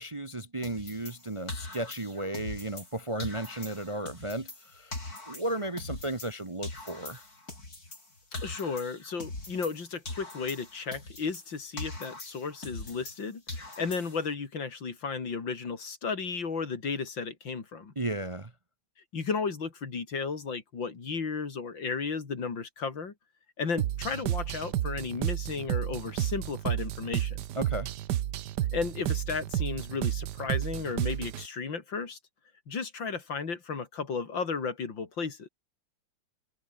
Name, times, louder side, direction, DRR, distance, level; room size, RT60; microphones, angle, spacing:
voice 1, 0.0-5.0 5.3-7.2 18.0-18.5 27.5-27.9, right 1 dB, 20° right, 0.9 m, -34 dB
sound 1, 0.6-2.9 3.2-6.4 6.6-9.8 10.1-13.2 13.5-14.3, left 2 dB, 50° left, 6.7 m, -42 dB
voice 2, 8.4-17.9 19.1-23.1 23.6-27.4 28.7-32.2 32.7-35.5, left 5 dB, 85° left, 3.7 m, -34 dB
sound 2, 23.8-31.5, right 12 dB, 70° right, 1.3 m, -31 dB
omnidirectional pair, 2.0 m